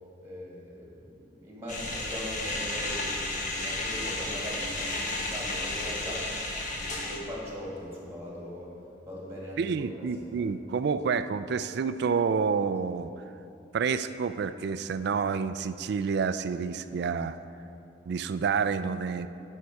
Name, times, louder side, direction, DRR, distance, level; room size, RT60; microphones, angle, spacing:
voice 1, 0.2-6.4 6.7-8.7 9.0-10.1 10.4-10.5, equal, 15° right, -5 dB, 1.9 m, -40 dB
sound 1, 1.7-7.2, left 2 dB, 40° left, 1.1 m, -33 dB
voice 2, 9.6-13.1 13.7-17.4 18.1-19.3, right 5 dB, 60° right, 13 dB, 0.3 m, -29 dB
11.0 x 5.5 x 4.7 m, 2.7 s
head